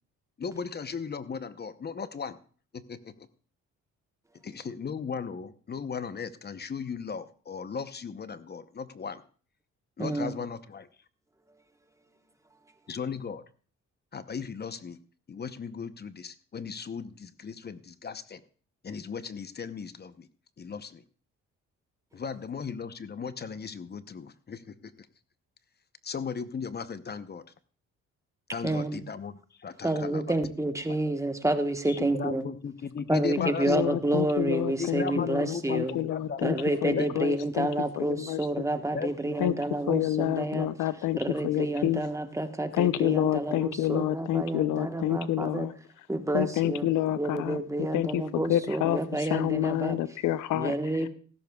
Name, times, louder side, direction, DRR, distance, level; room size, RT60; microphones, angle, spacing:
voice 1, 0.4-2.4 2.7-3.3 4.4-9.2 10.0-10.9 12.9-13.4 14.1-15.0 15.3-18.4 18.8-20.3 20.6-21.0 22.1-25.1 26.0-27.4 28.5-30.4 31.9-33.8 34.8-36.5 37.0-37.1 38.9-39.4, left 6 dB, 35° left, 13 dB, 0.8 m, -37 dB
voice 2, 10.0-10.4 28.6-29.0 29.8-32.4 33.1-36.0 36.4-40.7 41.2-45.7 46.1-46.9 47.2-50.0 50.5-51.1, right 1 dB, 10° right, 8 dB, 1.2 m, -29 dB
voice 3, 33.4-36.5 36.8-37.7 38.0-38.4 39.4-39.5 39.9-41.2 41.4-42.0 42.7-45.7 46.3-47.6 47.9-50.7, left 13 dB, 85° left, 15 dB, 0.6 m, -28 dB
15.5 x 13.5 x 2.3 m, 0.41 s
cardioid pair, 90°, 30 cm